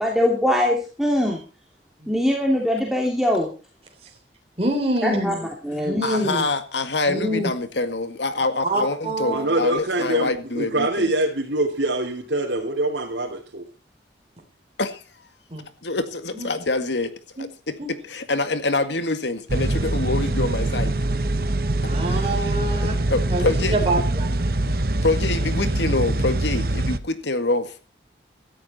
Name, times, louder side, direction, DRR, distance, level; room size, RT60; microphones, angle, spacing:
voice 1, 0.0-1.4 2.1-3.5 5.0-5.3 5.6-6.0, left 1 dB, ahead, 2.9 m, -22 dB
voice 2, 4.6-5.4 5.8-6.5 7.1-7.5 8.6-9.6 15.5-15.6 16.3-16.5 17.4-17.5 17.8-17.9 21.8-23.0 23.3-24.4 25.0-25.1, right 1 dB, 35° right, 3.4 m, -26 dB
voice 3, 6.0-11.1 14.8-15.0 15.8-17.1 17.4-17.8 18.1-20.9 23.1-23.8 24.7-24.8 25.0-27.7, left 2 dB, 80° left, 2.0 m, -25 dB
voice 4, 9.3-13.6, right 2 dB, 85° right, 3.1 m, -24 dB
sound 1, 19.5-27.0, right 2 dB, 55° right, 1.0 m, -23 dB
17.5 x 13.5 x 4.3 m
head